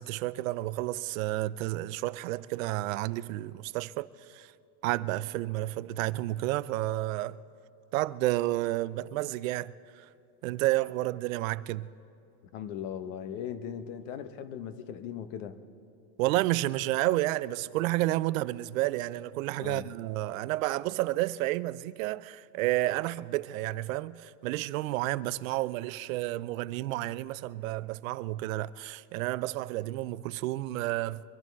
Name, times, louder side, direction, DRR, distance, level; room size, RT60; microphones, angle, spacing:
voice 1, 0.0-4.5 4.8-7.4 7.9-10.1 10.4-11.9 16.2-31.2, right 17 dB, 60° right, 0.5 m, -31 dB
voice 2, 12.5-15.6 19.6-19.9, left 9 dB, 55° left, 1.1 m, -38 dB
23.5 x 11.5 x 4.6 m
supercardioid pair, 160°, 47 cm